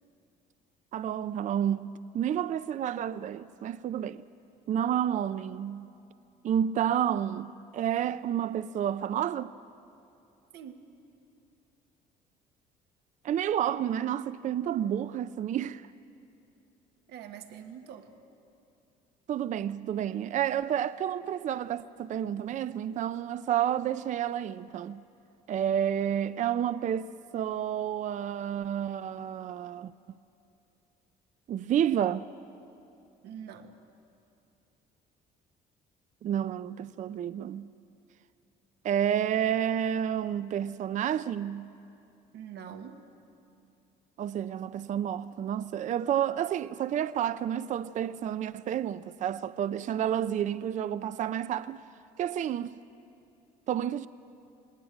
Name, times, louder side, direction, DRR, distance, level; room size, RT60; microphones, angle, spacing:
voice 1, 0.9-4.2 4.7-5.9 6.4-9.5 13.2-15.9 19.3-25.0 25.5-29.9 31.5-32.3 36.2-37.7 38.8-41.7 44.2-51.8 52.2-52.8 53.7-54.1, right 10 dB, 45° right, 0.5 m, -30 dB
voice 2, 10.5-10.9 17.1-18.1 33.2-33.8 42.3-43.0, right 8 dB, 80° right, 1.5 m, -44 dB
20.0 x 17.5 x 8.8 m
cardioid pair, 110°, 17 cm